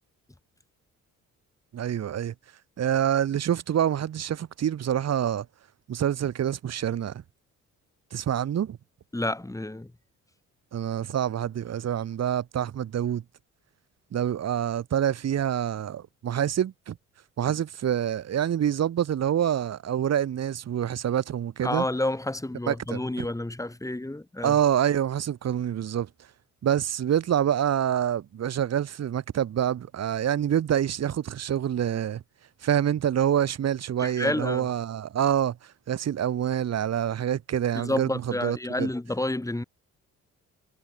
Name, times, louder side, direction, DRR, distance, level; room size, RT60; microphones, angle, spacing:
voice 1, 1.7-2.3 2.8-5.5 5.9-7.2 8.1-8.8 10.7-13.2 14.1-17.0 17.4-21.9 22.7-23.3 24.4-26.1 26.6-32.2 32.6-35.6 35.9-38.9, right 10 dB, 55° right, 2.0 m, -26 dB
voice 2, 9.1-9.9 21.6-24.6 34.0-34.7 37.7-39.6, left 1 dB, 10° left, 5.3 m, -29 dB
cardioid pair, 90°, 30 cm